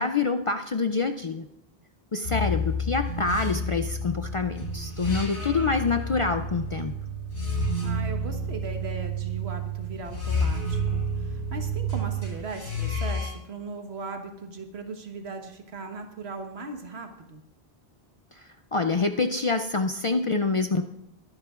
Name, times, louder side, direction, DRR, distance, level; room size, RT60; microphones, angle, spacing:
voice 1, 0.0-1.5 2.1-6.9 18.3-20.8, left 4 dB, 50° left, 7 dB, 0.4 m, -26 dB
sound 1, 2.2-13.3, equal, 80° left, 4.9 m, -30 dB
voice 2, 7.8-17.4, right 3 dB, 85° right, 5 dB, 1.5 m, -38 dB
22.0 x 10.5 x 2.4 m, 0.85 s
omnidirectional pair, 1.0 m